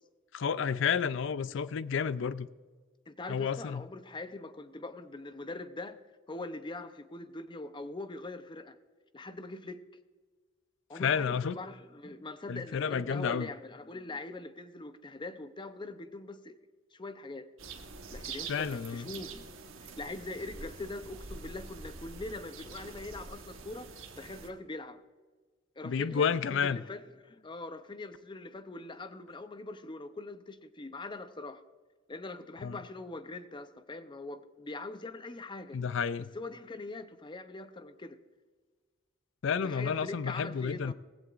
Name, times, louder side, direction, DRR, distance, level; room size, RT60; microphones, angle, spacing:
voice 1, 0.3-2.5 3.3-3.8 10.9-11.6 12.5-13.5 18.5-19.1 25.8-26.8 32.6-32.8 35.7-36.3 39.4-40.9, left 6 dB, 65° left, 0.4 m, -31 dB
voice 2, 3.1-6.0 6.3-8.8 9.1-9.8 10.9-16.6 16.9-17.5 18.1-19.5 20.0-25.0 25.8-31.6 32.1-35.8 36.2-38.2 39.6-40.9, left 2 dB, 25° left, 0.6 m, -42 dB
sound 1, 17.6-24.5, right 4 dB, 80° right, 1.3 m, -45 dB
17.5 x 15.5 x 2.5 m
head